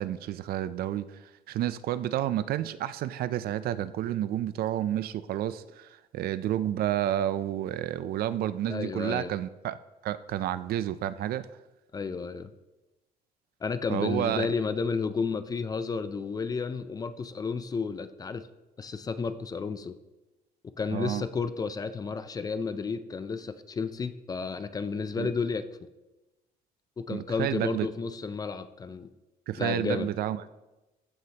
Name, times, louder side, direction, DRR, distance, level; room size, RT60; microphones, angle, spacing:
voice 1, 0.0-9.8 10.0-11.5 13.9-14.5 20.9-21.3 25.2-25.3 27.1-27.9 29.5-30.5, right 12 dB, 65° right, 14 dB, 0.5 m, -30 dB
voice 2, 8.7-9.3 11.9-12.5 13.6-18.5 18.8-19.9 20.8-25.6 27.0-29.1 29.6-30.1, left 5 dB, 20° left, 12 dB, 0.5 m, -32 dB
14.5 x 9.5 x 2.9 m, 1.1 s
cardioid pair, 150°, 17 cm